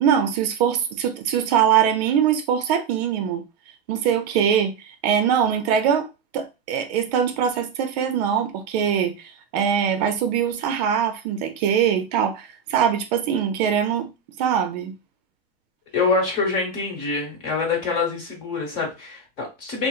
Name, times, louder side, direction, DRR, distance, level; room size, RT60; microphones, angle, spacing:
voice 1, 0.0-3.4 3.9-6.1 6.3-9.1 9.5-14.1 14.4-14.9, right 8 dB, 45° right, 0.5 m, -22 dB
voice 2, 15.9-19.9, left 4 dB, 30° left, 1.1 m, -25 dB
2.7 x 2.0 x 2.4 m
supercardioid pair, 150°, 30 cm